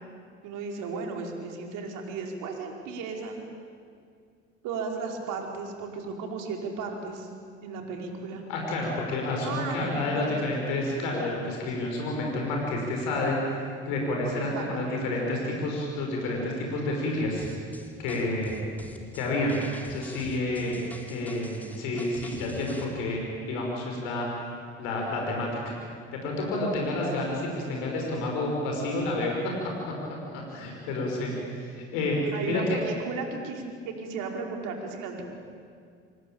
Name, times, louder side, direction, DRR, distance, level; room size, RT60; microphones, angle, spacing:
voice 1, 0.4-3.4 4.6-7.3 7.6-8.4 9.4-10.4 14.3-15.0 20.6-20.7 30.6-30.7 32.3-35.2, right 4 dB, 65° right, 2 dB, 5.2 m, -35 dB
voice 2, 8.5-13.6 13.8-17.5 18.0-18.6 19.1-20.7 21.1-24.3 24.8-25.8 26.1-29.5 30.3-32.2 32.4-32.8, left 2 dB, 70° left, -1 dB, 5.7 m, -29 dB
sound 1, 17.4-22.9, left 1 dB, 5° left, 4.7 m, -45 dB
26.0 x 23.5 x 8.9 m, 2.2 s
hypercardioid pair, 60°, 34 cm